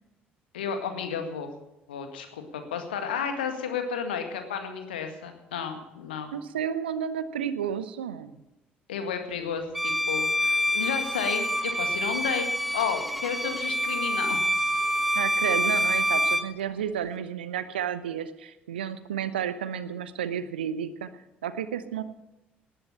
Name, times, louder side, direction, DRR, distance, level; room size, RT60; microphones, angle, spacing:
voice 1, 0.5-1.5 1.9-6.3 8.9-12.4 12.7-14.9, left 7 dB, 75° left, 6 dB, 2.0 m, -32 dB
voice 2, 6.3-8.3 15.1-21.1 21.4-22.0, right 8 dB, 75° right, 14 dB, 0.9 m, -31 dB
Bowed string instrument, 9.7-16.5, equal, ahead, 1.5 m, -26 dB
19.0 x 11.0 x 5.6 m, 0.94 s
figure-of-eight pair, 50°, 5 cm